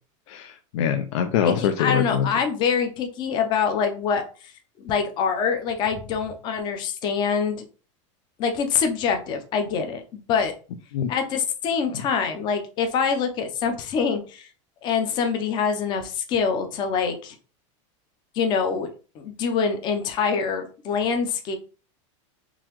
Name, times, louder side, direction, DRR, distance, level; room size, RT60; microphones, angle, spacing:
voice 1, 0.3-2.3 10.9-11.1, left 8 dB, 70° left, 6 dB, 0.5 m, -24 dB
voice 2, 1.4-4.5 4.8-7.6 8.4-10.0 10.3-10.5 11.1-14.5 14.8-17.4 18.3-18.9 19.1-21.6, left 6 dB, 30° left, 6 dB, 0.6 m, -25 dB
3.8 x 2.9 x 3.0 m, 0.36 s
supercardioid pair, 170°, 17 cm